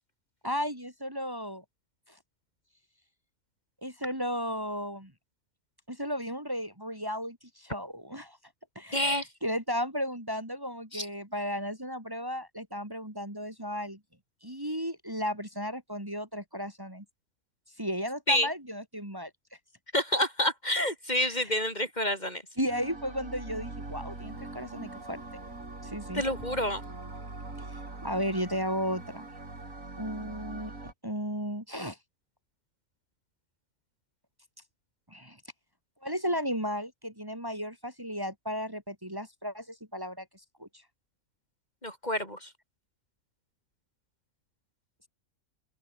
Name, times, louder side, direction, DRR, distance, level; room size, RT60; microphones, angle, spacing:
voice 1, 0.4-1.6 2.1-2.2 3.8-5.1 5.9-8.4 8.7-14.0 14.4-17.0 17.8-19.3 21.2-21.5 22.6-25.2 25.8-26.2 27.6-29.3 30.0-30.7 31.0-32.0 35.1-35.4 36.0-40.3 40.6-40.7, equal, 15° right, 5.0 m, -34 dB
voice 2, 8.9-9.3 10.9-11.1 18.3-18.5 19.9-22.4 26.1-26.8 41.8-42.5, left 1 dB, 30° left, 6.9 m, -28 dB
sound 1, 22.7-30.9, right 2 dB, 65° right, 5.0 m, -42 dB
omnidirectional pair, 1.5 m